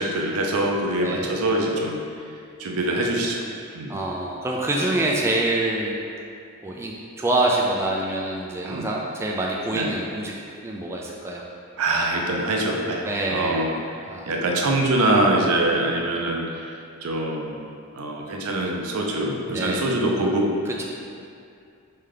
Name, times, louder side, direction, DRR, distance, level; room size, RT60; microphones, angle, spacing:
voice 1, 0.0-2.0 2.6-3.4 3.7-4.0 8.6-8.9 9.7-9.9 11.8-13.8 14.3-16.4 17.0-17.6 17.9-20.5, right 1 dB, 80° right, 0 dB, 0.6 m, -24 dB
voice 2, 1.0-1.3 3.9-6.0 6.6-10.3 10.6-11.4 13.0-13.6 14.0-14.3 15.5-15.7 19.5-19.8 20.7-20.8, right 2 dB, 10° right, -3 dB, 0.3 m, -26 dB
4.2 x 3.3 x 3.8 m, 2.4 s
head